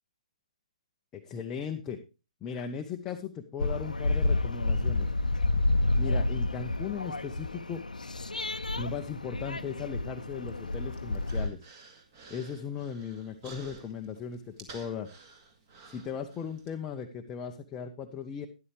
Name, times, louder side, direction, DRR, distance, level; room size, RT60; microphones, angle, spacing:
voice 1, 1.1-2.0 2.4-5.1 6.0-7.8 8.8-11.6 12.3-15.1 15.9-18.5, left 7 dB, 15° left, 4 dB, 0.6 m, -37 dB
sound 1, 3.6-11.5, left 2 dB, 75° left, 0.6 m, -29 dB
Human voice, 10.4-16.7, right 4 dB, 30° right, 2.1 m, -52 dB
12.5 x 10.5 x 3.3 m, 0.30 s
figure-of-eight pair, 135°, 4 cm